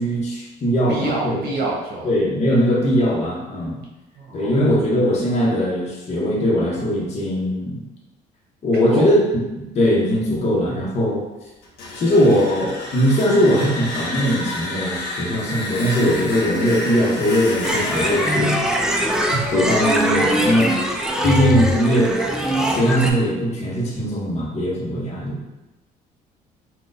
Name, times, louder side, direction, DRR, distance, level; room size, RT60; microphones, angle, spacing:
voice 1, 0.0-1.4 2.0-3.8 4.3-7.8 8.6-9.2 9.7-11.2 12.0-18.5 19.3-20.7 21.2-22.1 22.7-25.4, equal, 40° left, -5 dB, 0.8 m, -20 dB
voice 2, 0.9-2.1 4.2-4.7 8.7-9.1, right 2 dB, 65° right, -4 dB, 1.1 m, -27 dB
sound 1, 11.6-20.4, left 1 dB, 75° left, 0.7 m, -30 dB
sound 2, 17.6-23.1, equal, 5° right, 0.3 m, -21 dB
3.8 x 2.3 x 2.6 m, 1.0 s
cardioid pair, 110°, 17 cm